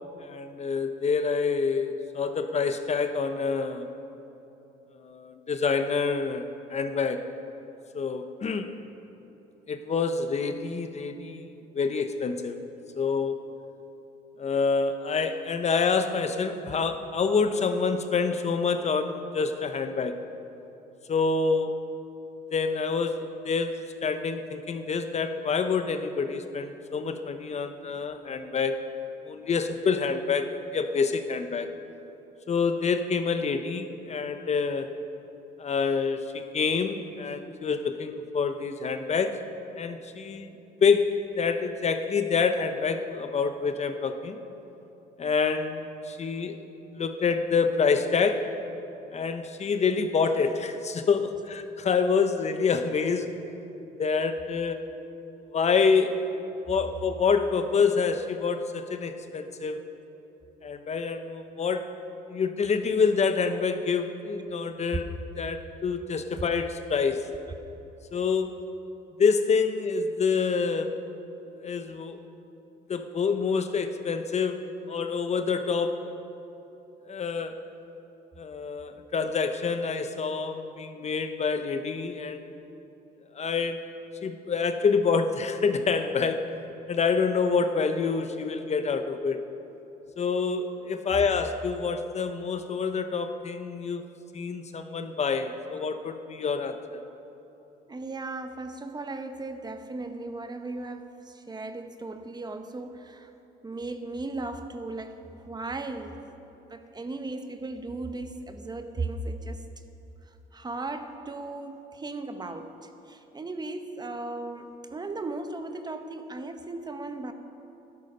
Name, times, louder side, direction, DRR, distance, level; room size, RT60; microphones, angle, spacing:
voice 1, 0.2-3.9 4.9-7.3 7.9-8.7 9.7-12.6 13.0-13.4 14.4-20.2 21.1-21.9 22.5-28.8 29.2-31.7 32.5-34.9 35.6-39.4 39.8-40.5 40.8-44.4 45.2-46.5 46.9-48.6 49.1-53.3 54.0-55.0 55.5-56.3 56.7-59.8 60.6-61.9 62.3-67.3 68.1-68.6 69.2-70.9 71.6-72.2 72.9-76.1 77.1-77.6 78.4-82.5 83.3-83.9 84.2-86.5 86.9-89.4 90.2-94.1 94.3-97.0, left 5 dB, 40° left, 8 dB, 0.8 m, -27 dB
voice 2, 97.9-103.3 103.6-109.7 110.3-117.3, right 2 dB, 25° right, 8 dB, 0.9 m, -37 dB
13.0 x 12.0 x 5.4 m, 3.0 s
cardioid pair, 85°, 18 cm